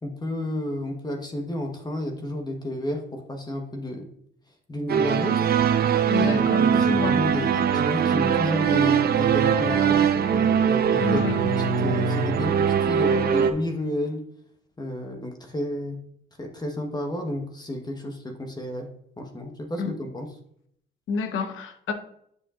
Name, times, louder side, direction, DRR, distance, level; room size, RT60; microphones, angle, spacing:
voice 1, 0.0-4.1 4.7-5.5 6.2-14.2 14.8-16.1 16.4-20.3, left 1 dB, 20° left, 1.1 m, -31 dB
sound 1, 4.9-13.5, right 7 dB, 50° right, 0.7 m, -21 dB
voice 2, 6.1-7.2 11.0-11.4 19.8-20.0 21.1-21.9, left 5 dB, 80° left, 1.0 m, -28 dB
9.6 x 5.2 x 2.4 m
cardioid pair, 90°, 20 cm